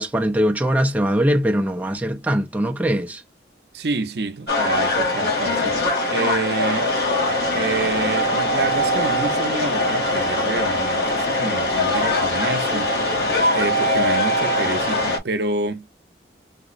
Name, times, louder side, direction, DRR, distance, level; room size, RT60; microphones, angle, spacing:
voice 1, 0.0-3.2, equal, 10° right, 0.4 m, -21 dB
voice 2, 3.7-5.8 6.1-6.9 7.5-13.2 13.5-15.9, right 3 dB, 70° right, 0.6 m, -28 dB
sound 1, 4.5-15.2, left 1 dB, 70° left, 1.0 m, -21 dB
4.7 x 2.0 x 2.4 m
head